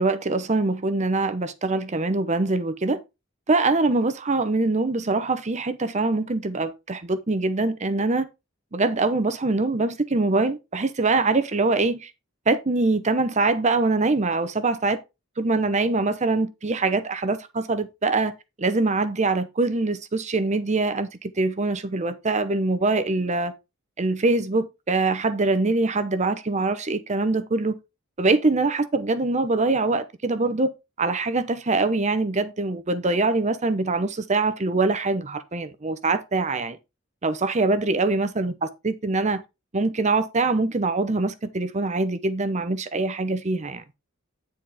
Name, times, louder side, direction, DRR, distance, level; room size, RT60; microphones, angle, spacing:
voice 1, 0.0-3.0 3.5-8.3 8.7-12.1 12.5-15.0 15.4-23.5 24.0-27.8 28.2-30.7 31.0-36.8 37.2-39.4 39.7-43.8, right 3 dB, 35° right, 0.8 m, -23 dB
9.8 x 4.3 x 4.9 m
head